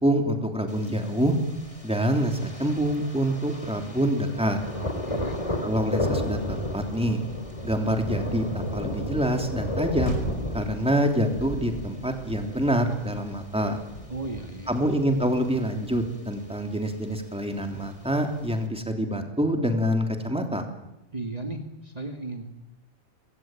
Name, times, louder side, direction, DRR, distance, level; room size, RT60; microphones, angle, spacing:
voice 1, 0.0-1.4 1.8-4.6 5.6-7.2 7.6-10.2 10.5-13.8 14.7-20.6, equal, 5° right, 5 dB, 3.2 m, -26 dB
Thunder, 0.7-18.7, left 1 dB, 25° left, 3.4 m, -34 dB
voice 2, 4.8-5.4 14.1-14.8 21.1-22.5, right 2 dB, 35° right, 4 dB, 2.3 m, -35 dB
Motor vehicle (road), 10.0-14.6, left 1 dB, 70° left, 5.6 m, -44 dB
26.0 x 22.0 x 9.2 m, 0.97 s
omnidirectional pair, 1.2 m